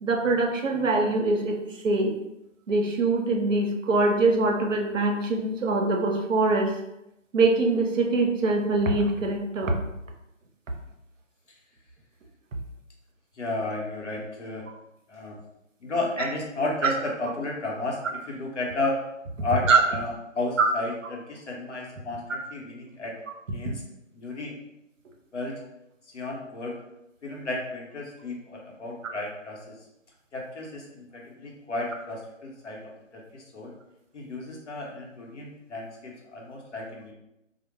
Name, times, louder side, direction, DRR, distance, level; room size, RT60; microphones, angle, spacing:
voice 1, 0.0-1.6 1.8-2.1 2.7-6.7 7.3-9.7 19.7-19.8 20.6-20.7, right 3 dB, 75° right, 2 dB, 0.6 m, -23 dB
voice 2, 13.4-14.6 15.1-15.4 15.8-19.0 19.4-23.1 23.5-23.8 24.1-24.6 25.3-25.6 26.1-26.7 27.2-29.8 30.3-32.8 33.1-33.7 34.1-37.1, left 2 dB, 65° left, -2 dB, 0.8 m, -33 dB
2.1 x 2.0 x 3.1 m, 0.87 s
figure-of-eight pair, 160°, 39 cm